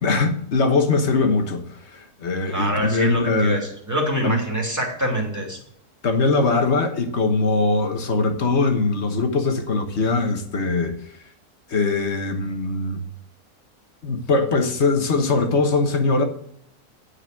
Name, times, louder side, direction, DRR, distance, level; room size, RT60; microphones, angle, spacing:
voice 1, 0.0-1.6 1.9-3.6 4.2-4.4 6.0-10.9 11.7-13.0 14.0-16.2, left 3 dB, 45° left, 1.4 m, -21 dB
voice 2, 2.5-5.6, right 1 dB, 10° right, 2.5 m, -25 dB
9.7 x 4.9 x 7.5 m
omnidirectional pair, 1.6 m